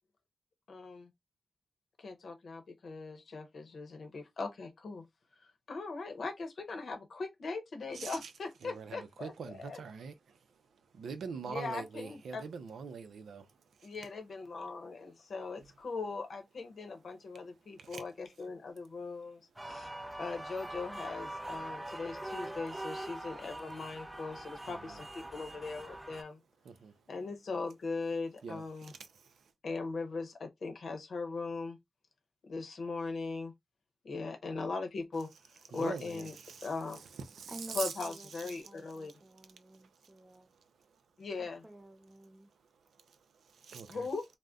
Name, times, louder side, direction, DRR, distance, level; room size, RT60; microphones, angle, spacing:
voice 1, 0.7-1.1 2.0-5.1 5.4-9.3 9.6-9.8 11.5-12.4 13.8-19.9 20.2-26.4 27.1-28.9 29.6-31.8 32.4-33.5 34.0-36.4 36.6-37.0 37.7-39.1 41.2-41.6 43.9-44.3, left 3 dB, 70° left, 0.7 m, -40 dB
voice 2, 7.9-8.3 8.6-10.6 10.9-13.9 17.8-18.0 24.7-25.0 26.6-26.9 28.4-29.5 35.7-37.9 38.3-38.6 39.7-40.9 42.9-44.1, right 5 dB, 85° right, 0.5 m, -44 dB
sound 1, 19.6-26.2, right 1 dB, 15° right, 0.4 m, -43 dB
voice 3, 37.5-40.5 41.4-42.5, right 1 dB, 30° right, 0.8 m, -52 dB
2.4 x 2.1 x 3.5 m
cardioid pair, 50°, 0 cm